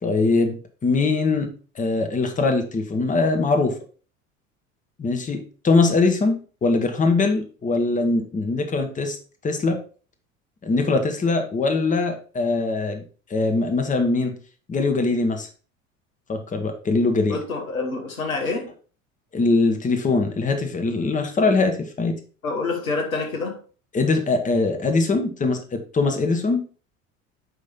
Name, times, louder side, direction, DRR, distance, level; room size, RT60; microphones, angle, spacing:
voice 1, 0.0-1.5 1.7-3.7 5.0-9.2 9.4-9.8 10.6-13.0 13.3-14.3 14.7-15.5 16.3-17.4 19.3-22.2 23.9-26.6, left 3 dB, 20° left, 1.1 m, -22 dB
voice 2, 17.3-18.7 22.4-23.6, left 3 dB, 80° left, 1.4 m, -27 dB
9.2 x 3.2 x 4.2 m
figure-of-eight pair, 70°, 41 cm